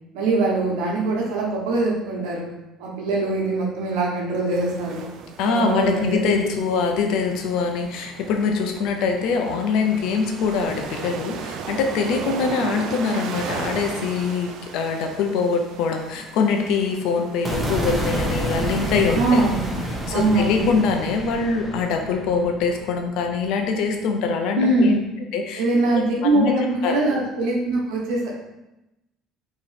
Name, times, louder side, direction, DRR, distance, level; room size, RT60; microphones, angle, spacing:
voice 1, 0.1-2.5 2.8-5.1 5.4-6.3 19.1-19.6 20.1-20.7 24.6-25.0 25.6-28.3, right 2 dB, 85° right, -2 dB, 1.0 m, -22 dB
sound 1, 4.5-20.8, right 6 dB, 65° right, 0.4 m, -37 dB
voice 2, 5.4-19.4 20.1-25.0 25.3-25.6 25.9-26.0 26.3-26.5 26.8-27.0, left 5 dB, 75° left, 4 dB, 0.6 m, -23 dB
sound 2, 17.5-23.7, right 1 dB, 20° right, 1.1 m, -29 dB
3.0 x 2.9 x 4.1 m, 0.93 s
supercardioid pair, 95°, 0 cm